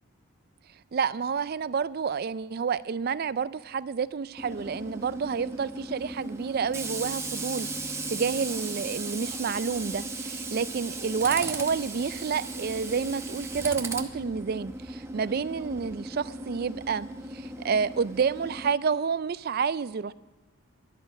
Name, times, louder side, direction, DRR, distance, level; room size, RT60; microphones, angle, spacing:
voice 1, 0.9-17.1 17.3-20.1, right 6 dB, 45° right, 0.3 m, -29 dB
Tools, 4.4-18.7, right 2 dB, 10° right, 0.8 m, -36 dB
13.0 x 11.0 x 6.4 m
head